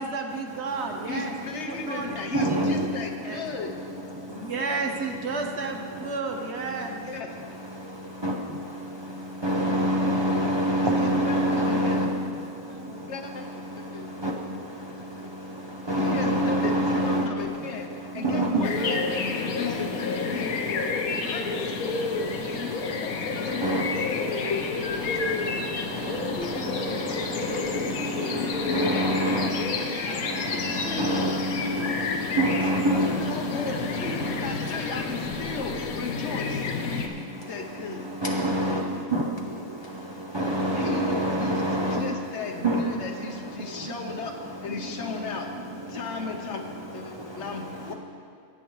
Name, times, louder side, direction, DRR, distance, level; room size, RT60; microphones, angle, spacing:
voice 1, 0.0-1.3 1.7-2.8 3.2-3.4 4.3-7.0, right 4 dB, 55° right, 3 dB, 1.0 m, -32 dB
voice 2, 1.1-3.7 7.0-7.4 10.8-12.1 13.1-13.4 13.9-14.1 16.0-17.9 18.1-20.5 21.3-21.7 22.6-22.7 23.0-23.8 24.1-24.6 25.3-25.4 26.4-26.8 28.3-29.0 30.1-32.0 32.6-36.7 37.5-38.1 40.7-45.5 45.9-47.9, left 4 dB, 60° left, 3 dB, 1.0 m, -35 dB
voice 3, 2.3-2.7 8.2-8.3 9.4-12.1 14.2-14.3 15.9-17.2 18.2-18.7 23.6-23.8 28.7-29.5 31.0-31.3 32.4-33.1 38.2-38.8 39.1-39.2 40.3-42.0 42.6-42.8, right 1 dB, 35° right, -1 dB, 0.4 m, -24 dB
sound 1, 18.6-37.1, left 4 dB, 80° left, 1.2 m, -30 dB
17.0 x 8.3 x 3.1 m, 2.2 s
omnidirectional pair, 1.5 m